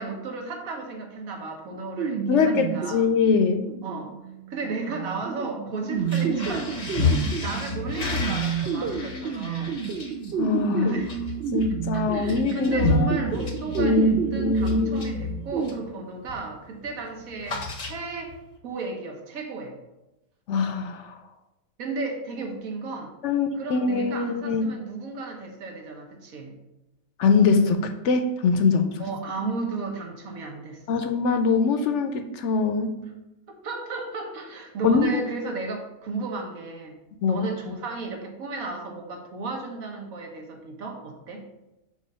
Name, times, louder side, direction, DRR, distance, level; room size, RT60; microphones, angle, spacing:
voice 1, 0.0-3.1 3.8-4.1 4.5-9.8 10.8-11.2 11.9-18.4 18.6-19.7 21.8-23.1 23.5-26.6 29.0-31.0 33.6-37.0 37.3-41.4, right 3 dB, 90° right, 1 dB, 1.5 m, -34 dB
sound 1, 2.0-15.7, right 6 dB, 65° right, 0.6 m, -30 dB
voice 2, 2.3-3.6 10.4-11.0 11.5-13.1 13.8-15.2 20.5-21.1 23.2-24.6 27.2-29.0 30.9-33.0 34.8-35.2 37.2-37.4, left 4 dB, 70° left, 7 dB, 0.8 m, -23 dB
sound 2, 6.0-15.9 16.3-16.6 16.8-18.4, left 4 dB, 40° left, 0.7 m, -31 dB
6.9 x 2.6 x 5.4 m, 0.96 s
omnidirectional pair, 1.4 m